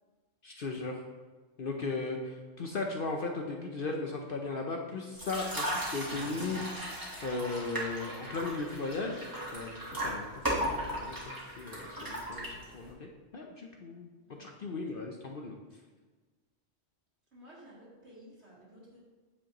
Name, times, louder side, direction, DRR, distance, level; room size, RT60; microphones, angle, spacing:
voice 1, 0.4-1.0 1.6-6.6 6.9-15.6, left 3 dB, 55° left, 2 dB, 0.8 m, -37 dB
sound 1, 5.2-12.9, equal, 15° right, 1.5 m, -37 dB
voice 2, 14.2-15.2 17.3-19.0, equal, 55° right, -7 dB, 3.0 m, -55 dB
8.5 x 7.3 x 3.0 m, 1.3 s
omnidirectional pair, 1.3 m